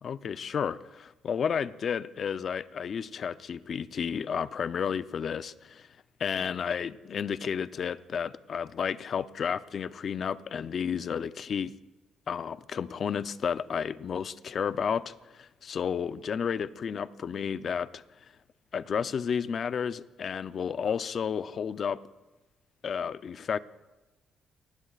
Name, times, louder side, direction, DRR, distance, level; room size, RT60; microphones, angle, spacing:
voice 1, 0.0-5.9 6.2-11.7 12.3-18.0 18.7-22.0 22.8-23.6, left 7 dB, 55° left, 0.6 m, -32 dB
29.0 x 20.0 x 2.5 m
cardioid pair, 90°, 0 cm